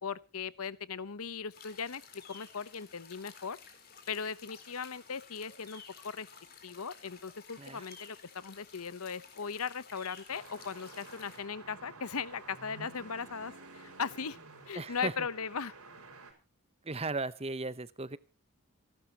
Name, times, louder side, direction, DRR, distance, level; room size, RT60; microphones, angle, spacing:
voice 1, 0.0-2.0 2.3-3.6 4.1-6.3 6.6-14.4 14.7-15.7, left 6 dB, 80° left, 17 dB, 0.9 m, -38 dB
sound 1, 1.5-11.4, left 6 dB, 45° left, 4.1 m, -53 dB
sound 2, 10.3-16.3, right 3 dB, 90° right, 5.7 m, -51 dB
voice 2, 14.7-15.1 16.8-18.2, right 3 dB, 25° right, 16 dB, 0.8 m, -36 dB
27.5 x 12.0 x 2.9 m, 0.33 s
head